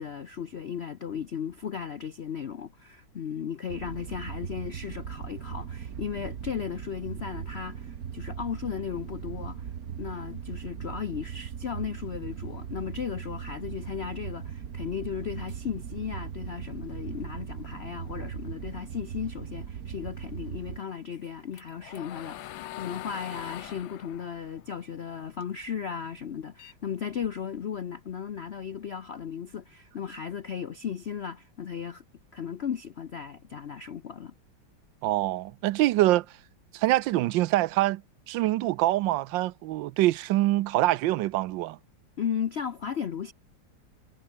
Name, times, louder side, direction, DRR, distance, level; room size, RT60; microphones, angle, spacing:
voice 1, 0.0-9.7 10.0-32.0 32.3-34.3 42.2-43.3, left 7 dB, 65° left, 0.6 m, -36 dB
sound 1, 3.7-20.8, right 8 dB, 50° right, 1.6 m, -39 dB
sound 2, 21.1-25.7 26.0-27.6, left 15 dB, 85° left, 1.4 m, -43 dB
voice 2, 35.0-36.3 36.7-38.0 38.3-41.8, right 16 dB, 75° right, 1.3 m, -25 dB
omnidirectional pair, 2.1 m